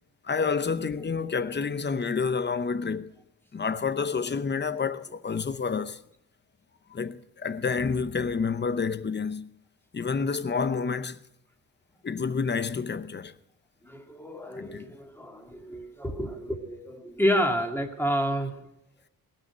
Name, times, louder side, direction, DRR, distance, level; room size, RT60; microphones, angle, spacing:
voice 1, 0.2-3.1 3.5-6.0 6.9-9.5 9.9-11.2 12.0-13.3 14.6-14.9, left 5 dB, 30° left, 0.8 m, -29 dB
voice 2, 13.8-18.6, equal, 5° left, 2.0 m, -29 dB
18.5 x 6.5 x 9.9 m
wide cardioid pair, 105°, 38 cm